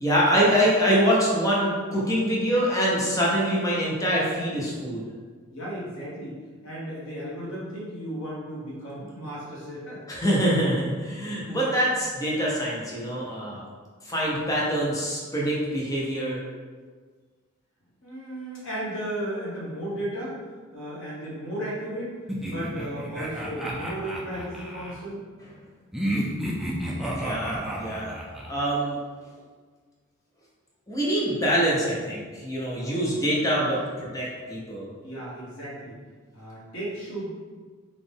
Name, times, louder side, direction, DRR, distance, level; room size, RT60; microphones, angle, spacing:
voice 1, 0.0-5.0 10.1-13.6 14.0-16.4 27.0-28.1 28.5-29.0 30.9-34.9, equal, 15° left, -5 dB, 0.7 m, -25 dB
voice 2, 5.5-6.3 6.6-10.0 18.0-20.4 20.7-22.1 22.4-25.2 35.0-35.9 36.3-37.3, right 1 dB, 65° left, -7 dB, 1.5 m, -34 dB
sound 1, 22.3-25.0 25.9-28.5, right 1 dB, ahead, 0.3 m, -31 dB
4.0 x 2.5 x 3.5 m, 1.5 s
head